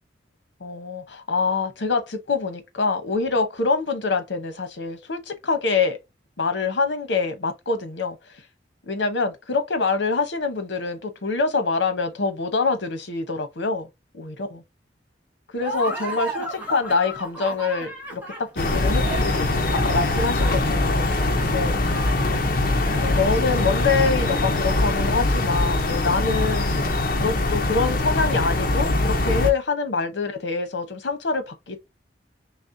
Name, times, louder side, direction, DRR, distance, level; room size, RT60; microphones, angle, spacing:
voice 1, 0.6-6.0 6.4-8.2 8.9-13.9 14.1-14.6 15.5-18.2 18.5-19.0 19.3-21.1 21.5-21.7 23.0-26.7 27.2-31.8, left 4 dB, 80° left, 0.9 m, -25 dB
Laughter, 15.6-23.9, right 2 dB, 10° right, 1.7 m, -35 dB
sound 1, 18.6-29.5, left 2 dB, 50° left, 0.7 m, -22 dB
4.1 x 3.3 x 2.7 m
head